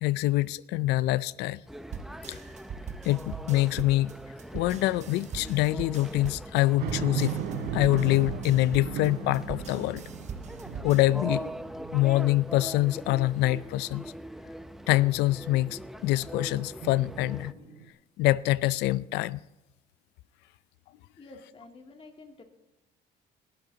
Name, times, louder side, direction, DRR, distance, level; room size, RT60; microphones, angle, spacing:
voice 1, 0.0-1.6 2.3-2.4 3.0-4.2 4.5-7.4 7.7-10.0 10.8-11.5 11.9-14.1 14.9-17.5 18.2-19.4, left 17 dB, 85° left, 0.5 m, -25 dB
sound 1, 1.7-17.5, right 1 dB, ahead, 0.7 m, -42 dB
sound 2, 1.9-11.0, right 6 dB, 45° right, 1.1 m, -41 dB
sound 3, 6.8-12.3 12.8-12.9 16.8-17.9, right 6 dB, 85° right, 4.0 m, -36 dB
voice 2, 21.2-22.4, left 3 dB, 35° left, 2.8 m, -49 dB
20.0 x 12.5 x 2.9 m
cardioid pair, 110°, 17 cm